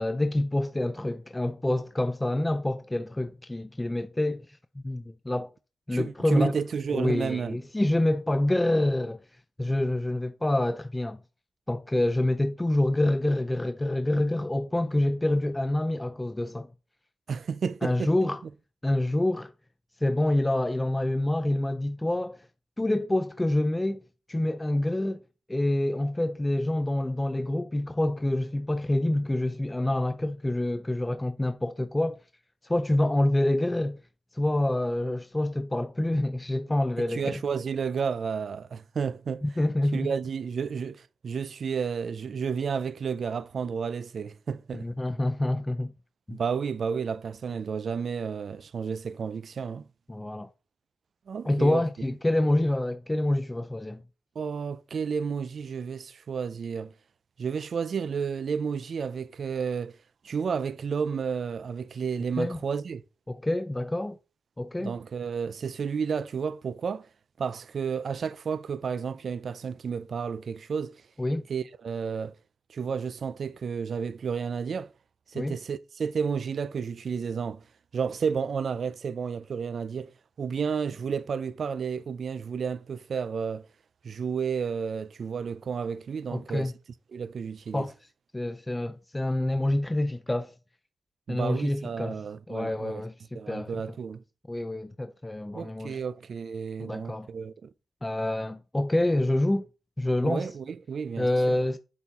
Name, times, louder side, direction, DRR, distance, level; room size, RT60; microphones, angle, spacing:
voice 1, 0.0-5.5 5.9-6.6 6.9-9.2 9.6-11.2 11.7-16.7 17.8-18.4 18.8-19.5 20.0-22.4 22.8-24.0 24.3-25.2 25.5-32.2 32.6-34.0 34.3-37.4 39.4-40.1 44.7-45.9 46.3-46.4 50.1-50.5 51.4-54.0 62.4-62.6 63.3-64.2 64.6-64.9 71.2-71.4 75.3-75.6 86.3-86.7 87.7-87.9 88.3-90.5 91.3-92.2 92.5-93.8 94.5-96.0 96.8-97.3 98.0-99.7 100.0-100.5 101.2-101.8, left 1 dB, 15° left, 0.4 m, -27 dB
voice 2, 5.9-7.6 17.3-18.1 37.1-39.4 39.9-44.9 46.3-49.9 51.3-51.8 54.4-56.9 57.4-60.0 60.2-63.0 64.8-67.1 67.4-71.0 71.5-72.4 72.7-74.9 75.3-77.6 77.9-83.7 84.0-86.7 87.1-87.9 91.3-93.0 93.3-94.2 95.5-97.7 100.2-101.6, right 6 dB, 65° right, 0.4 m, -31 dB
8.2 x 4.4 x 3.6 m
cardioid pair, 90°, 0 cm